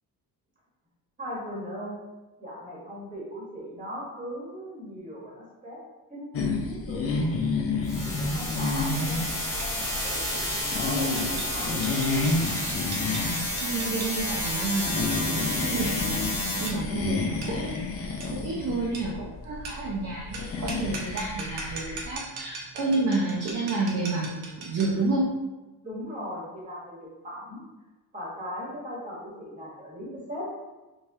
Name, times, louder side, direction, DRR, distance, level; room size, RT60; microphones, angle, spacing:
voice 1, 1.2-2.0 2.4-5.8 6.1-7.2 7.9-12.0 25.8-27.6 28.1-30.5, equal, 20° right, -6 dB, 1.2 m, -39 dB
sound 1, 6.3-22.1, left 3 dB, 40° left, 0.4 m, -31 dB
sound 2, 7.8-16.7, left 1 dB, 10° left, 0.8 m, -31 dB
sound 3, 9.6-25.1, right 3 dB, 75° right, 0.9 m, -42 dB
voice 2, 13.6-17.8 18.3-25.3, right 3 dB, 40° right, -5 dB, 0.6 m, -30 dB
3.5 x 3.2 x 2.7 m, 1.1 s
cardioid pair, 160°, 39 cm